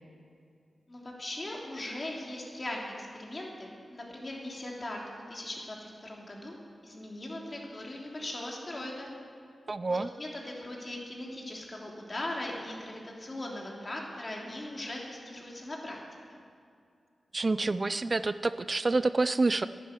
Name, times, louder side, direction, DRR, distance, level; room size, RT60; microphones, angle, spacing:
voice 1, 0.9-5.0 5.3-6.6 6.8-9.1 9.8-16.0, left 1 dB, 35° left, -2 dB, 3.2 m, -39 dB
voice 2, 9.7-10.1 17.3-19.7, right 3 dB, 40° right, 13 dB, 0.4 m, -28 dB
11.0 x 11.0 x 9.1 m, 2.4 s
cardioid pair, 60°, 0 cm